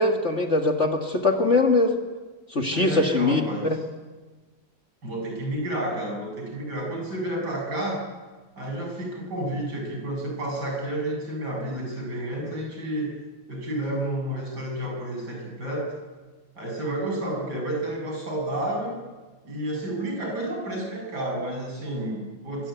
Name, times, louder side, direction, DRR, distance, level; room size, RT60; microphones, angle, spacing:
voice 1, 0.0-1.9 2.5-3.8, left 2 dB, 35° left, 3 dB, 2.2 m, -22 dB
voice 2, 2.7-3.8 5.0-8.0 8.6-13.1 13.5-15.9 16.6-19.0 19.4-22.7, right 1 dB, 55° right, 0 dB, 8.8 m, -30 dB
25.0 x 25.0 x 9.3 m, 1.3 s
omnidirectional pair, 2.2 m